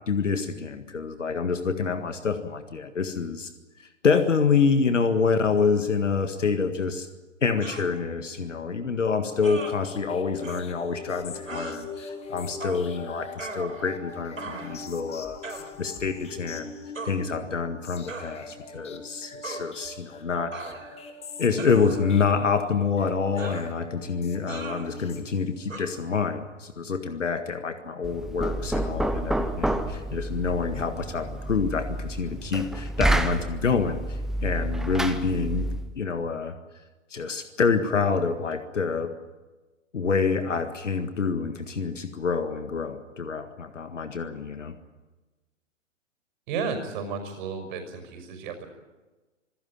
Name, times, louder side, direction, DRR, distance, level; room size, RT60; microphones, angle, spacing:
voice 1, 0.1-3.5 3.8-7.1 7.4-16.7 17.0-20.7 21.4-36.6 37.1-39.1 39.9-44.8, left 5 dB, 70° left, 8 dB, 1.8 m, -27 dB
sound 1, 7.6-7.9 9.4-9.7 10.4-10.6 11.4-11.8 12.6-12.9 13.4-14.0 14.4-14.8 15.4-15.7 16.9-17.2 18.1-18.3 19.4-19.7 20.5-21.1 21.6-22.2 23.4-23.7 24.5-24.9 25.7-25.9, right 3 dB, 80° right, 4.0 m, -38 dB
sound 2, 9.3-25.8, left 3 dB, 15° left, 2.0 m, -42 dB
Knock, 28.0-35.9, right 1 dB, ahead, 0.8 m, -29 dB
voice 2, 46.5-48.7, right 5 dB, 40° right, 3 dB, 5.7 m, -33 dB
26.5 x 16.5 x 9.0 m, 1.2 s
figure-of-eight pair, 120°, 38 cm